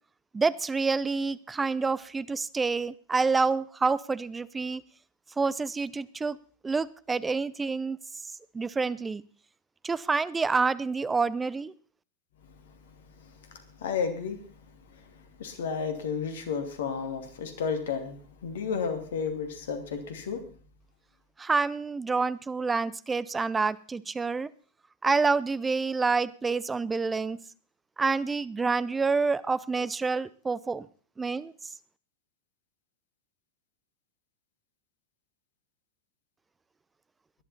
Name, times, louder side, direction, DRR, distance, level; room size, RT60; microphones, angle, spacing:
voice 1, 0.3-4.8 5.4-6.4 6.6-8.0 8.5-9.2 9.8-11.7 21.4-24.5 25.0-27.4 28.0-30.9 31.2-31.5, right 4 dB, 15° right, 18 dB, 0.7 m, -28 dB
voice 2, 13.2-14.4 14.9-20.4, left 6 dB, 65° left, 7 dB, 2.6 m, -33 dB
18.5 x 11.5 x 4.3 m, 0.41 s
figure-of-eight pair, 90°, 0 cm